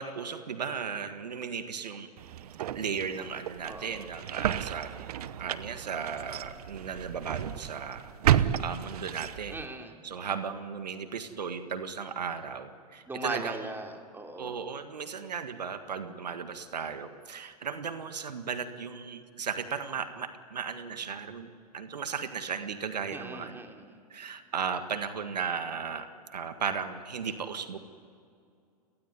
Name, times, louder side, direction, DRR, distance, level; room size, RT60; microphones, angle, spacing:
voice 1, 0.0-2.1 2.8-4.9 5.4-9.6 10.0-13.6 14.4-21.5 21.7-23.6 24.1-27.8, right 6 dB, 85° right, 9 dB, 1.7 m, -36 dB
sound 1, 2.2-9.7, right 11 dB, 70° right, 1.0 m, -32 dB
voice 2, 3.7-4.1 9.5-9.9 13.1-14.6 23.1-23.8, right 2 dB, 10° right, 3 dB, 3.2 m, -38 dB
29.5 x 19.5 x 9.6 m, 2.4 s
hypercardioid pair, 105°, 21 cm